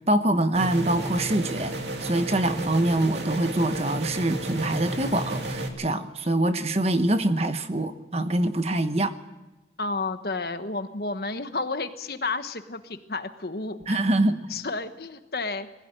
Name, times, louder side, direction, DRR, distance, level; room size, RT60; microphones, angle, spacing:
voice 1, 0.0-1.7 2.0-9.1 13.9-14.4, right 1 dB, 35° right, 9 dB, 1.1 m, -24 dB
sound 1, 0.5-5.7, right 1 dB, 85° right, 2.7 m, -32 dB
voice 2, 9.8-14.0 14.3-15.7, left 3 dB, 60° left, 9 dB, 1.2 m, -31 dB
20.5 x 16.0 x 9.1 m, 1.0 s
head